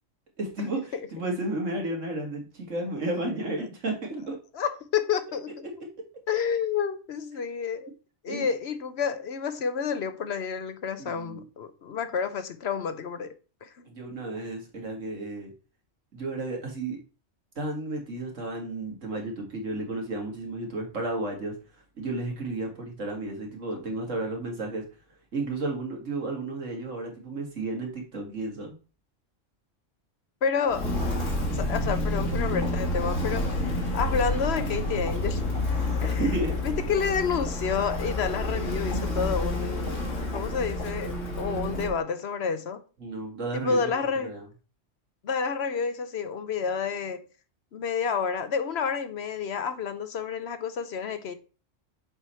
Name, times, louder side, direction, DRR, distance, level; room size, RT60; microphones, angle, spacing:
voice 1, 0.4-4.4 8.3-8.5 11.0-11.4 13.8-15.5 16.1-17.0 17.6-21.5 22.0-24.8 25.3-28.8 36.1-36.6 43.0-43.9 44.2-44.5, right 2 dB, 80° right, 2.2 m, -32 dB
voice 2, 4.5-5.7 6.3-7.9 8.2-13.3 13.6-13.8 23.7-23.8 30.4-30.9 31.5-35.4 36.0-36.2 36.6-40.0 40.3-42.8 43.5-44.3 45.2-47.3 47.7-51.3, left 6 dB, 60° left, 1.0 m, -29 dB
Walk footsteps, 30.7-42.0, left 1 dB, 80° left, 2.1 m, -29 dB
6.8 x 4.9 x 4.3 m
omnidirectional pair, 1.3 m